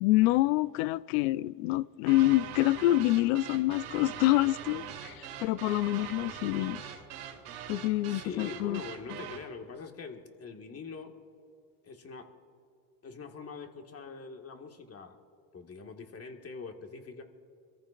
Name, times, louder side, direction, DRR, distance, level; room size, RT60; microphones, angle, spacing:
voice 1, 0.0-6.8 7.7-8.8, left 17 dB, 80° left, 0.5 m, -27 dB
sound 1, 2.1-9.5, right 9 dB, 85° right, 2.4 m, -42 dB
voice 2, 8.1-11.2 11.8-12.3 13.0-15.2 15.5-17.2, left 5 dB, 35° left, 1.9 m, -43 dB
24.5 x 14.5 x 2.5 m
supercardioid pair, 85°, 43 cm